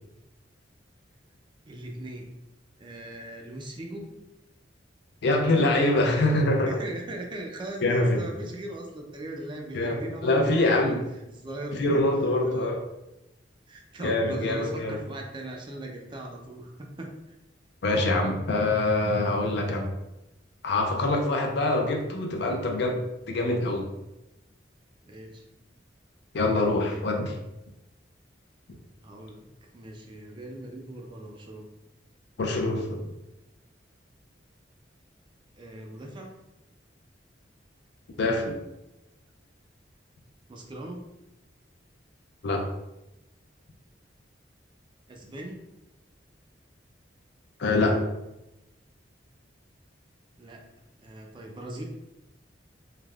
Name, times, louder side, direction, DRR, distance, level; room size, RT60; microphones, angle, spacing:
voice 1, 1.7-2.4 2.8-4.2 6.7-11.0 11.3-11.8 12.4-12.8 13.7-17.2 25.1-25.4 29.0-29.5 29.7-31.7 35.6-36.4 40.5-41.1 45.1-45.6 50.4-50.7 51.0-51.8, right 1 dB, 25° right, 1 dB, 0.4 m, -39 dB
voice 2, 5.2-6.8 7.8-8.2 9.7-11.0 11.8-12.8 14.0-15.0 17.8-19.9 20.6-23.0 23.3-23.9 26.3-27.4 32.4-33.1 38.2-38.6 42.4-42.7 47.6-48.0, left 2 dB, 65° left, 2 dB, 0.5 m, -24 dB
3.2 x 2.1 x 2.3 m, 0.93 s
head